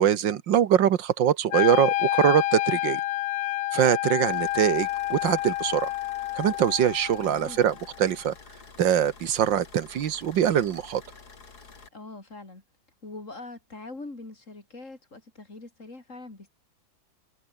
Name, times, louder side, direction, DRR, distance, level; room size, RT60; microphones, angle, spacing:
voice 1, 0.0-3.0 3.7-5.9 6.4-8.3 8.8-11.0, right 10 dB, 85° right, 1.9 m, -23 dB
Wind instrument woodwind instrument, 1.5-7.6, left 17 dB, 80° left, 1.2 m, -28 dB
sound 1, 4.3-11.9, left 4 dB, 60° left, 3.6 m, -49 dB
voice 2, 7.2-7.6 11.9-12.6 13.0-16.5, left 2 dB, 40° left, 4.9 m, -42 dB
omnidirectional pair, 2.0 m